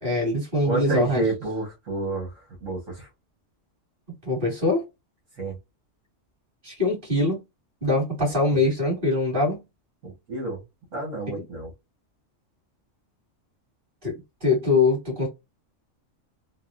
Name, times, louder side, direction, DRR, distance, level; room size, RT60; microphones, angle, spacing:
voice 1, 0.0-1.2 4.2-4.8 6.6-7.4 7.8-9.6 14.0-15.3, left 2 dB, 40° right, 2.4 m, -23 dB
voice 2, 0.6-3.1 5.4-5.6 8.5-8.6 10.0-10.6 10.9-11.7, right 2 dB, 75° right, 1.8 m, -29 dB
3.9 x 2.0 x 2.4 m
omnidirectional pair, 1.3 m